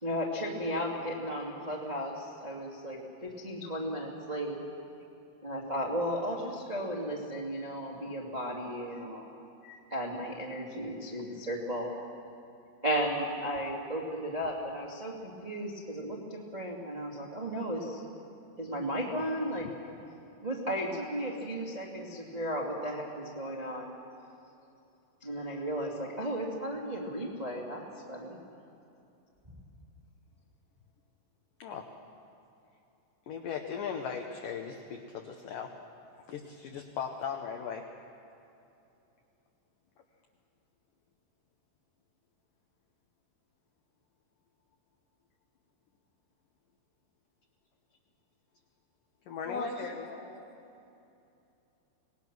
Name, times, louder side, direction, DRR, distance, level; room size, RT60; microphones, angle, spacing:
voice 1, 0.0-3.0 3.4-4.6 5.4-9.3 9.6-11.9 12.8-18.0 18.6-19.7 20.4-24.0 25.2-27.8 28.1-28.4, equal, 20° right, -3 dB, 1.0 m, -35 dB
voice 2, 33.3-35.7 36.3-37.9 49.3-49.9, left 7 dB, 75° left, 2 dB, 2.0 m, -38 dB
voice 3, 49.4-50.4, left 2 dB, 55° left, 0 dB, 2.8 m, -38 dB
25.5 x 19.0 x 6.2 m, 2.8 s
omnidirectional pair, 5.3 m